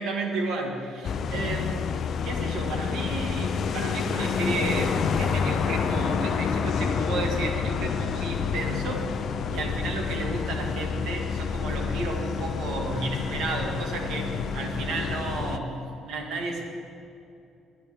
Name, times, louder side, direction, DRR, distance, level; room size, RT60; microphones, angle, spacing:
voice 1, 0.0-1.8 2.2-9.1 9.5-16.6, right 3 dB, 65° right, 2 dB, 2.1 m, -32 dB
sound 1, 1.0-15.6, left 6 dB, 45° left, 0.6 m, -28 dB
20.0 x 10.5 x 3.7 m, 2.7 s
cardioid pair, 145°, 0 cm